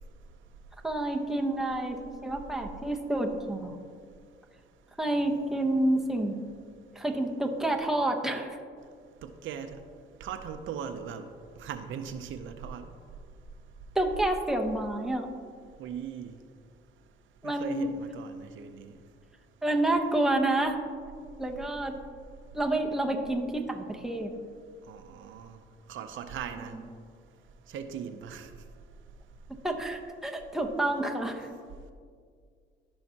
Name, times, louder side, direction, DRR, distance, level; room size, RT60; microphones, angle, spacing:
voice 1, 0.8-3.8 5.0-6.4 6.9-8.6 13.9-15.3 17.4-18.0 19.6-20.8 21.4-22.0 22.5-24.3 26.6-26.8 29.5-31.5, right 1 dB, ahead, 1 dB, 0.9 m, -29 dB
voice 2, 10.2-11.3 11.6-12.8 15.8-16.3 17.4-18.9 24.9-25.6 25.9-26.7 27.7-28.5, right 7 dB, 75° right, 8 dB, 0.6 m, -39 dB
15.0 x 5.6 x 2.8 m, 2.2 s
cardioid pair, 90°, 20 cm